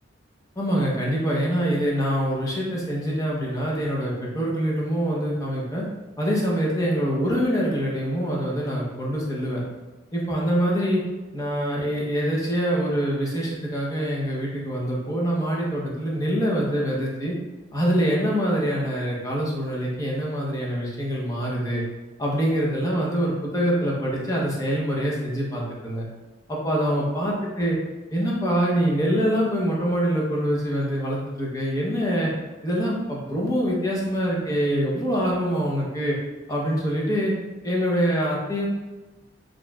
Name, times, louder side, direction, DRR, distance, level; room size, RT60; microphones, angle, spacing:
voice 1, 0.6-5.8 6.2-9.6 10.1-11.0 11.3-17.3 17.7-21.8 22.2-26.1 26.5-27.8 28.1-32.3 32.6-36.2 36.5-37.3 37.6-38.7, equal, 20° left, -4 dB, 0.7 m, -25 dB
4.6 x 3.0 x 2.3 m, 1.2 s
head